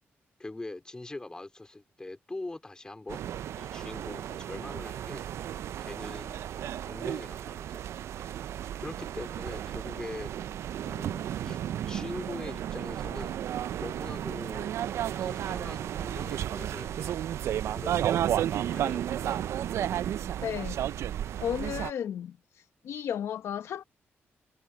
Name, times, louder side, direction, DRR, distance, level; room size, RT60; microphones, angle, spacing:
voice 1, 0.4-3.2 3.6-5.3 5.8-6.5 6.9-7.8 8.1-8.3 8.8-10.5 10.8-11.6 11.8-13.4 13.8-14.7 15.2-17.3 17.7-19.4, left 2 dB, 15° left, 3.7 m, -42 dB
sound 1, 3.1-21.9, right 11 dB, 80° right, 0.4 m, -33 dB
voice 2, 20.4-20.8 21.4-22.4 22.8-23.8, left 9 dB, 85° left, 0.9 m, -33 dB
cardioid pair, 110°, 5 cm